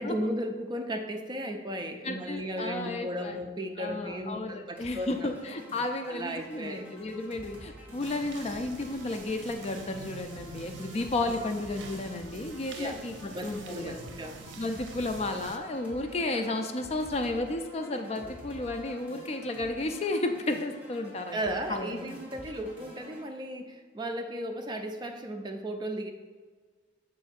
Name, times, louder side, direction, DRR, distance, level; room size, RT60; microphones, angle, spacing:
voice 1, 0.0-5.2 6.1-6.9 11.2-11.3 12.8-13.0 13.3-14.4 16.2-16.4 21.3-26.1, right 1 dB, 25° right, 4 dB, 0.5 m, -35 dB
voice 2, 2.0-3.4 3.8-14.0 14.6-21.4 21.7-22.1, left 2 dB, 35° left, 6 dB, 0.4 m, -33 dB
sound 1, 4.8-23.3, equal, 10° right, 1.7 m, -49 dB
sound 2, 8.0-15.6, right 4 dB, 80° right, 0.6 m, -46 dB
7.2 x 2.6 x 5.8 m, 1.4 s
head